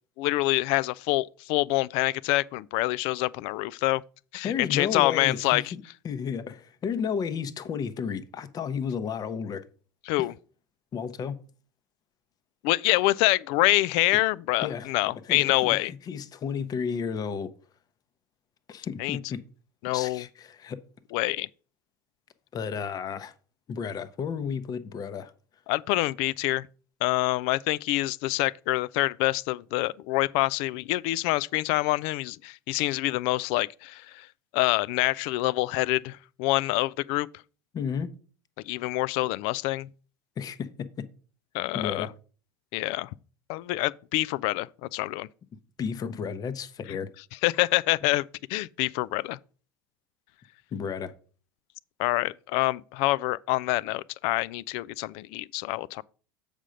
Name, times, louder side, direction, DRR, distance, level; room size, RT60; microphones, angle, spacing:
voice 1, 0.2-4.0 4.3-5.7 10.1-10.3 12.6-15.9 19.0-19.2 19.8-20.2 21.1-21.5 25.7-26.7 27.0-34.3 34.5-37.3 38.7-39.9 41.5-42.1 42.7-43.1 43.5-45.3 47.4-49.4 52.0-56.0, left 19 dB, 55° left, 0.4 m, -26 dB
voice 2, 4.4-5.6 6.0-9.6 10.2-10.3 10.9-11.4 14.6-14.9 15.2-17.5 18.7-19.4 19.9-20.8 22.5-23.3 23.7-25.3 37.7-38.1 40.4-40.7 41.7-42.1 45.8-47.1 50.7-51.1, left 6 dB, 35° left, 0.8 m, -32 dB
7.4 x 5.1 x 5.0 m
hypercardioid pair, 80°, 11 cm